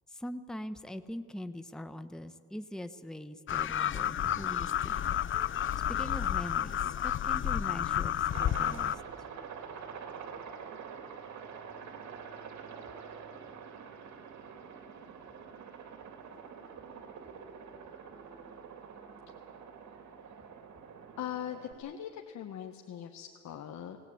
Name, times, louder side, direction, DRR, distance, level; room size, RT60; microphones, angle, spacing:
voice 1, 0.1-5.1 5.9-9.3, equal, ahead, 9 dB, 1.0 m, -42 dB
sound 1, 3.5-9.0, left 10 dB, 45° left, 0.5 m, -31 dB
Aircraft, 8.3-21.7, right 6 dB, 70° right, 2.8 m, -46 dB
voice 2, 21.2-24.0, left 10 dB, 65° left, 3 dB, 1.5 m, -41 dB
21.5 x 19.0 x 8.7 m, 2.2 s
cardioid pair, 90°, 30 cm